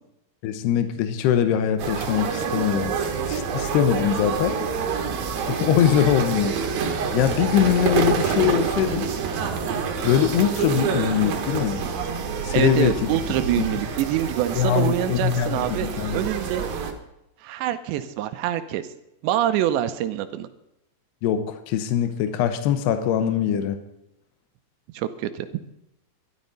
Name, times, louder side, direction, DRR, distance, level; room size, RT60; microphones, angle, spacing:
voice 1, 0.4-2.9 3.3-4.6 5.5-6.5 7.1-9.1 10.0-11.8 12.4-13.0 13.7-13.8 14.6-16.3 21.2-23.8, left 9 dB, 70° left, 9 dB, 3.0 m, -22 dB
sound 1, 1.8-16.9, right 6 dB, 60° right, 3.0 m, -27 dB
voice 2, 12.5-16.7 17.4-18.8 19.2-20.5 24.9-25.5, right 12 dB, 80° right, 10 dB, 3.0 m, -25 dB
12.5 x 12.0 x 5.3 m, 0.86 s
omnidirectional pair, 5.2 m